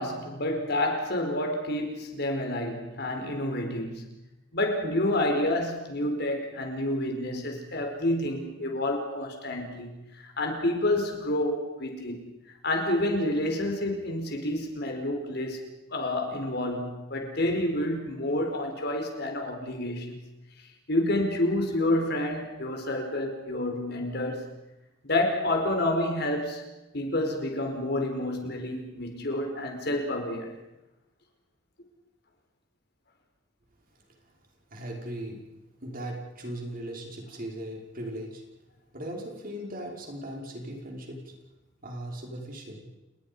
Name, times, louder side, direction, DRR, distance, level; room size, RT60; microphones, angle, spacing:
voice 1, 0.0-4.1 4.5-12.3 12.6-15.6 15.9-20.2 20.9-24.4 25.0-26.6 26.9-30.5, left 1 dB, 60° left, 4 dB, 4.7 m, -29 dB
voice 2, 34.7-35.4 35.8-38.4 38.9-41.3 41.8-42.9, right 1 dB, 50° right, 0 dB, 5.6 m, -38 dB
30.0 x 20.5 x 5.6 m, 1.0 s
head